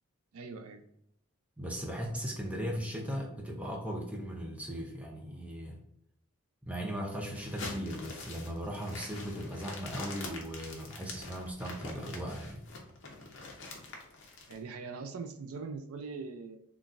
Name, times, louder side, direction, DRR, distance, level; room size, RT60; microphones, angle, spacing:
voice 1, 0.3-0.8 14.5-16.6, right 4 dB, 80° right, 8 dB, 0.4 m, -41 dB
voice 2, 1.6-5.8 6.7-12.6, equal, 5° right, 0 dB, 0.4 m, -38 dB
sound 1, 7.3-14.6, left 3 dB, 55° left, 0.7 m, -45 dB
3.8 x 2.3 x 2.5 m, 0.76 s
head